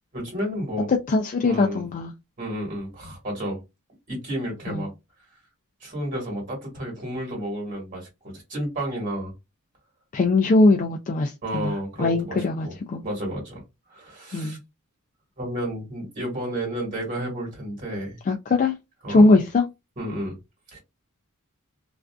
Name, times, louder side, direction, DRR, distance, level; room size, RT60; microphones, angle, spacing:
voice 1, 0.1-0.9 1.4-1.8 2.4-3.6 4.1-4.9 5.8-9.3 11.4-12.4 12.6-12.7 13.0-13.6 13.9-14.6 15.4-18.2 19.0-19.3 20.0-20.4 20.7-20.8, right 1 dB, 40° right, 1.4 m, -31 dB
voice 2, 1.1-2.1 4.7-4.9 10.1-13.0 14.3-14.6 18.3-18.7 19.1-19.6, left 2 dB, 35° left, 0.3 m, -21 dB
2.4 x 2.4 x 2.2 m
head